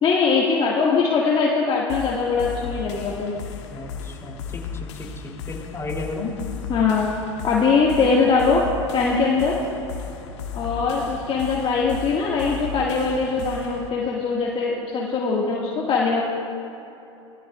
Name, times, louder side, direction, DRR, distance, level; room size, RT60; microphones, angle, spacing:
voice 1, 0.0-3.3 6.7-7.1 7.4-9.6 10.5-16.2, left 4 dB, 35° left, -4 dB, 2.1 m, -21 dB
sound 1, 1.9-13.9, left 6 dB, 70° left, 1.4 m, -35 dB
voice 2, 3.7-6.4, left 3 dB, 15° left, -2 dB, 3.6 m, -34 dB
25.5 x 16.5 x 2.5 m, 3.0 s
hypercardioid pair, 80°, 16 cm